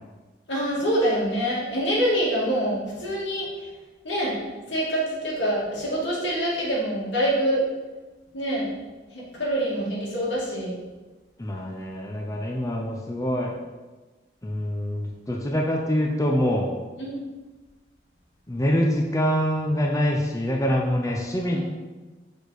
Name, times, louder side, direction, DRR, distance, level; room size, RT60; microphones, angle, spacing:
voice 1, 0.5-3.5 4.0-4.3 4.7-7.6 8.3-8.7 9.1-10.8 17.0-17.2 21.5-21.6, equal, 90° left, -5 dB, 2.2 m, -25 dB
voice 2, 11.4-13.5 14.4-16.7 18.5-21.6, equal, 20° left, 0 dB, 0.6 m, -25 dB
6.3 x 5.1 x 4.1 m, 1.2 s
head